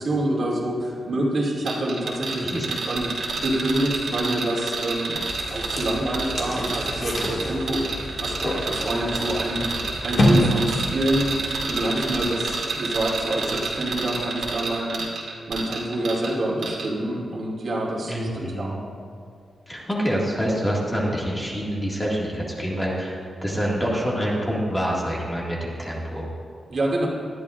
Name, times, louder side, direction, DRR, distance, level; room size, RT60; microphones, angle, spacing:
voice 1, 0.0-3.1 3.4-5.2 5.5-9.7 10.0-11.3 11.7-15.0 15.5-18.8 26.7-27.1, right 1 dB, 45° right, -3 dB, 2.4 m, -26 dB
sound 1, 1.7-16.3 16.6-16.9, right 4 dB, 85° right, 2.3 m, -29 dB
voice 2, 2.4-2.7 18.1-18.8 19.7-26.3, equal, 10° left, -4 dB, 1.9 m, -26 dB
sound 2, 5.2-11.8, left 1 dB, 45° left, 1.8 m, -27 dB
19.0 x 12.0 x 2.5 m, 2.2 s
wide cardioid pair, 180°, 0 cm